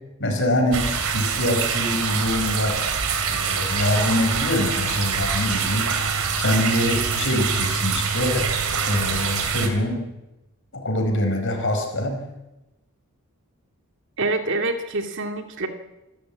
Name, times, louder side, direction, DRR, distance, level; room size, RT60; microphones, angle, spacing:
voice 1, 0.2-0.9 1.1-2.8 3.3-5.9 6.3-8.5 8.8-10.1 10.7-12.2, left 1 dB, 55° left, 4 dB, 4.8 m, -24 dB
sound 1, 0.7-9.7, right 5 dB, 70° right, 3.0 m, -25 dB
voice 2, 14.2-15.7, right 2 dB, 55° right, 6 dB, 2.3 m, -26 dB
27.0 x 13.5 x 8.5 m, 0.99 s
head